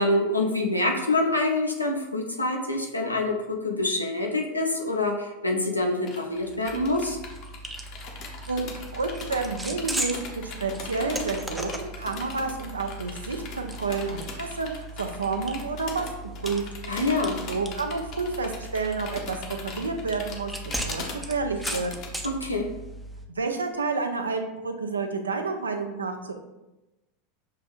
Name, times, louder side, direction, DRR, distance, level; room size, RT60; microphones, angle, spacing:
voice 1, 0.0-7.2 16.9-17.4 22.2-22.7, left 2 dB, 85° left, 1 dB, 0.6 m, -26 dB
sound 1, 6.1-22.2, left 4 dB, 45° left, 0.7 m, -40 dB
sound 2, 6.7-23.3, right 1 dB, 5° right, 0.4 m, -38 dB
voice 2, 8.9-16.0 16.4-16.7 17.5-20.5 20.8-21.9 23.3-26.3, right 4 dB, 80° right, 5 dB, 0.4 m, -30 dB
6.4 x 2.6 x 2.5 m, 0.99 s
figure-of-eight pair, 85°, 0 cm